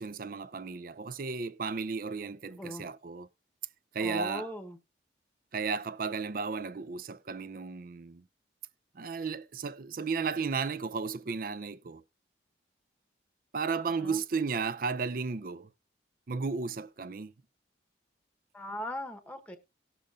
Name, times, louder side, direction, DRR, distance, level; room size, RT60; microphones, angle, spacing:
voice 1, 0.0-3.3 3.9-4.5 5.5-8.2 9.0-12.0 13.5-15.7 16.3-17.3, right 5 dB, 50° right, 0.5 m, -34 dB
voice 2, 2.5-2.9 4.0-4.8 14.0-14.2 18.5-19.6, left 1 dB, 5° left, 1.0 m, -39 dB
18.0 x 7.0 x 2.4 m
head